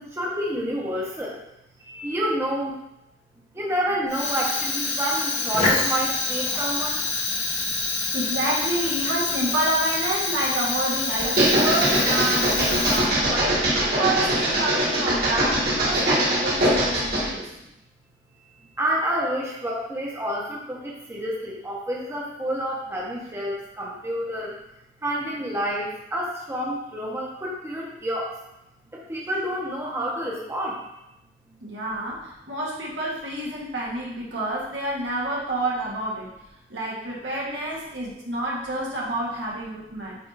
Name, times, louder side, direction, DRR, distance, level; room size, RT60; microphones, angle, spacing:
voice 1, 0.0-1.4 1.8-2.7 3.5-7.0 18.8-24.5 25.0-28.3 28.9-30.8, equal, 15° right, -4 dB, 1.1 m, -28 dB
Fire, 4.1-13.4, left 3 dB, 45° left, 1.1 m, -26 dB
voice 2, 7.8-13.6 14.0-17.5 31.6-36.3 36.7-40.2, right 1 dB, 85° right, -5 dB, 1.8 m, -28 dB
sound 1, 11.2-17.3, right 1 dB, 55° right, 1.8 m, -22 dB
8.5 x 2.8 x 4.1 m, 0.86 s
head